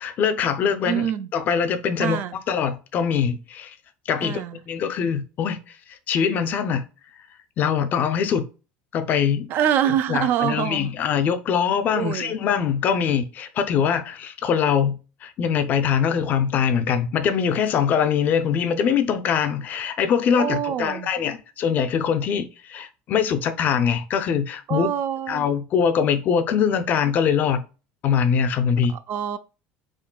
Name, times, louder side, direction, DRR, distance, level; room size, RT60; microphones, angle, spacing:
voice 1, 0.0-1.1 1.3-2.2 2.5-3.7 4.1-5.6 5.9-6.8 7.6-8.5 8.9-9.5 10.1-24.9 25.3-27.6 28.0-28.9, left 7 dB, 40° left, 0.4 m, -23 dB
voice 2, 0.8-1.3 2.0-2.4 4.2-4.6 9.5-11.0 11.9-12.4 20.4-21.1 24.7-25.5 28.9-29.4, right 9 dB, 45° right, 0.3 m, -25 dB
3.9 x 3.7 x 2.2 m
cardioid pair, 145°, 5 cm